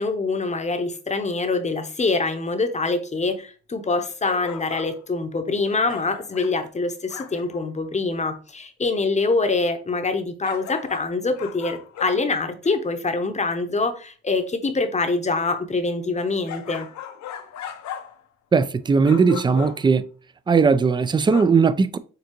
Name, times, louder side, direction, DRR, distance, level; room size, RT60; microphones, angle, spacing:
voice 1, 0.0-16.9, left 3 dB, 25° left, 0.8 m, -25 dB
sound 1, 4.2-5.0 5.7-6.6 7.1-7.6 10.4-12.8 16.5-18.2 18.5-18.8 19.0-19.9 21.3-21.4, left 9 dB, 65° left, 0.7 m, -37 dB
voice 2, 18.5-20.0 20.5-22.0, right 5 dB, 15° right, 0.3 m, -18 dB
6.7 x 2.6 x 3.0 m
cardioid pair, 90°, 30 cm